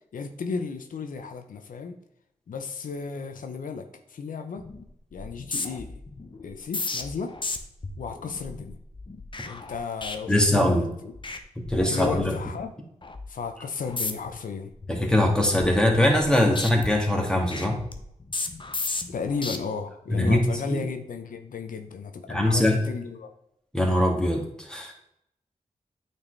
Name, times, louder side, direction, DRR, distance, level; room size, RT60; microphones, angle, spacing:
voice 1, 0.1-2.0 2.5-4.7 5.1-6.0 6.4-7.3 8.0-8.8 9.4-11.1 11.9-12.7 13.3-14.7 19.1-23.3, left 5 dB, 90° left, 6 dB, 0.6 m, -34 dB
sound 1, 4.6-4.8 5.1-10.8 11.1-11.4 11.7-12.6 13.0-13.3 13.8-14.4 14.8-16.3 16.6-19.6 20.1-20.4, left 3 dB, 35° left, 0.8 m, -35 dB
voice 2, 10.3-10.9 11.7-12.3 14.9-17.8 20.1-20.8 22.3-22.8 23.7-24.4 24.7-24.9, left 1 dB, 5° left, 1 dB, 1.8 m, -22 dB
8.9 x 4.3 x 3.2 m, 0.78 s
cardioid pair, 65°, 14 cm